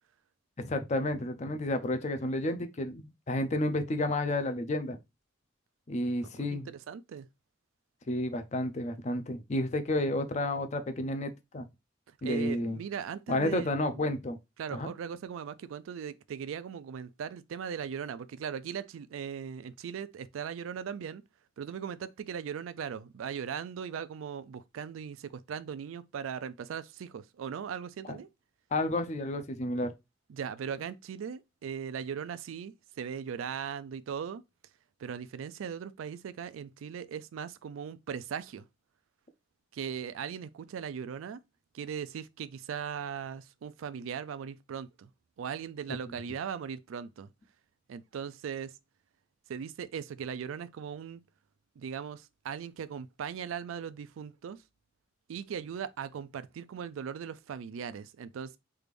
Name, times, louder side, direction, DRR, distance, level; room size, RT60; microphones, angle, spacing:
voice 1, 0.6-5.0 5.9-6.7 8.1-11.7 12.2-12.8 13.3-14.4 14.7-14.9 28.1-28.2 28.7-29.9, left 1 dB, 35° left, 0.5 m, -31 dB
voice 2, 6.3-7.3 12.2-14.2 14.6-21.2 21.6-28.3 30.3-34.4 35.0-38.7 39.7-41.4 41.7-45.1 45.4-47.3 47.9-48.7 49.5-51.2 51.8-54.6 55.3-58.6, right 7 dB, 85° right, 0.3 m, -39 dB
3.3 x 2.5 x 3.3 m
head